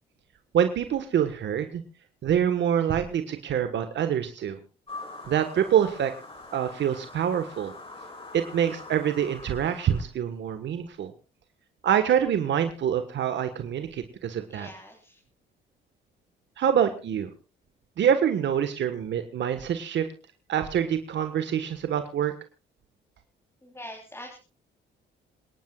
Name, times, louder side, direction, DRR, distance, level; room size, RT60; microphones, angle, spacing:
voice 1, 0.5-1.8 2.2-4.6 5.3-6.1 6.5-7.7 8.3-11.1 11.8-14.7 16.6-17.3 18.0-20.1 20.5-22.3, right 9 dB, 65° right, 8 dB, 1.5 m, -25 dB
sound 1, 4.9-10.0, left 2 dB, 30° left, 6.0 m, -43 dB
voice 2, 14.5-15.2 23.6-24.4, left 1 dB, 15° left, 1 dB, 3.6 m, -43 dB
27.5 x 11.0 x 2.4 m, 0.34 s
cardioid pair, 90°, 20 cm